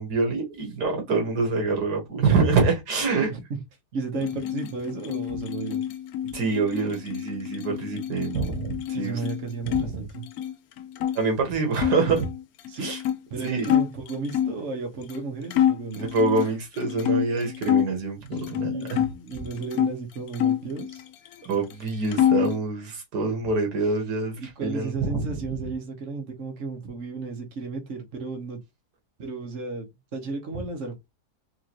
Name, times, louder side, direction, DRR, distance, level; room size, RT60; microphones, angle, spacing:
voice 1, 0.0-3.3 6.3-9.2 9.7-10.0 11.2-12.3 12.8-13.0 13.4-13.7 15.9-19.0 21.4-25.4, right 3 dB, 80° right, 1.9 m, -26 dB
voice 2, 3.9-5.8 8.9-10.2 12.7-12.9 13.3-16.1 18.6-21.0 24.4-28.6 29.2-31.0, right 4 dB, 50° right, 1.3 m, -34 dB
sound 1, 4.1-9.9 10.2-11.2 11.7-14.6 15.1-15.2 15.5-17.9 18.3-19.9 20.3-21.5 21.7-22.6, left 10 dB, 70° left, 1.0 m, -27 dB
4.7 x 2.6 x 2.9 m
omnidirectional pair, 1.7 m